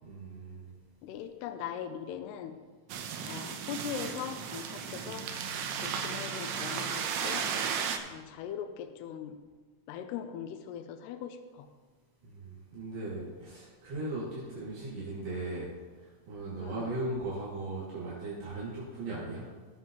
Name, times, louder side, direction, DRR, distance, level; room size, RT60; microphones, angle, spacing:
voice 1, 0.0-0.7 12.2-19.5, right 2 dB, 65° right, -8 dB, 4.2 m, -38 dB
voice 2, 1.0-2.6 3.2-5.3 5.7-7.5 8.1-9.4 9.9-11.7 16.6-16.9, left 8 dB, 85° left, 8 dB, 2.4 m, -40 dB
sound 1, 2.9-8.0, right 7 dB, 85° right, 3.2 m, -35 dB
19.0 x 7.4 x 3.0 m, 1.4 s
omnidirectional pair, 5.5 m